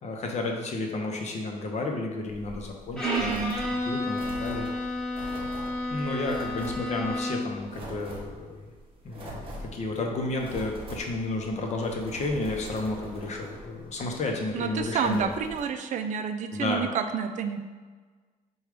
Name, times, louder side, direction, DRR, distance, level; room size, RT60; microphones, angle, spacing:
voice 1, 0.0-3.4 3.8-4.7 5.9-8.7 9.0-15.3 16.5-16.9, left 2 dB, 50° left, 1 dB, 0.7 m, -32 dB
sound 1, 2.3-15.6, right 1 dB, 35° right, 0.9 m, -43 dB
Bowed string instrument, 3.0-7.6, left 2 dB, 5° left, 0.7 m, -31 dB
voice 2, 3.0-3.6 14.5-17.6, right 7 dB, 55° right, 7 dB, 0.4 m, -29 dB
4.7 x 2.3 x 4.8 m, 1.4 s
cardioid pair, 145°, 15 cm